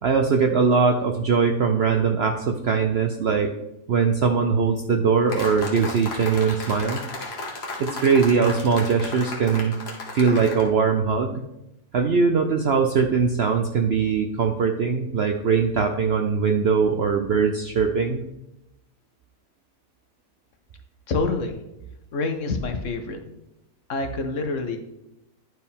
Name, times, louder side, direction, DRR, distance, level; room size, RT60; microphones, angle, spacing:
voice 1, 0.0-3.5 3.9-7.0 7.8-9.7 10.1-11.4 11.9-18.2, right 5 dB, 65° right, 4 dB, 0.6 m, -21 dB
sound 1, 5.3-10.7, left 2 dB, 45° left, 1.4 m, -35 dB
voice 2, 21.1-21.6 22.1-23.2 23.9-24.8, left 3 dB, 60° left, 6 dB, 1.0 m, -26 dB
10.5 x 4.6 x 3.5 m, 0.87 s
omnidirectional pair, 1.6 m